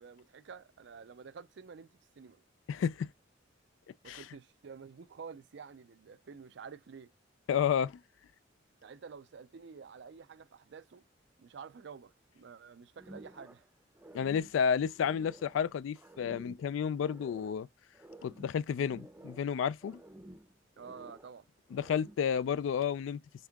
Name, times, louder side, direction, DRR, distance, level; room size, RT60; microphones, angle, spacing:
voice 1, 0.0-2.4 4.0-7.1 8.8-11.0 11.4-13.7 20.8-21.5, right 6 dB, 65° right, 0.4 m, -50 dB
voice 2, 2.7-3.1 4.1-4.2 7.5-8.0 14.1-17.7 18.2-20.0 21.7-23.2, left 7 dB, 85° left, 0.3 m, -31 dB
sound 1, 13.0-13.7 13.9-15.6 15.9-17.6 17.9-19.6 19.8-21.4 21.7-22.3, right 1 dB, 10° right, 0.6 m, -53 dB
5.3 x 3.6 x 2.2 m
head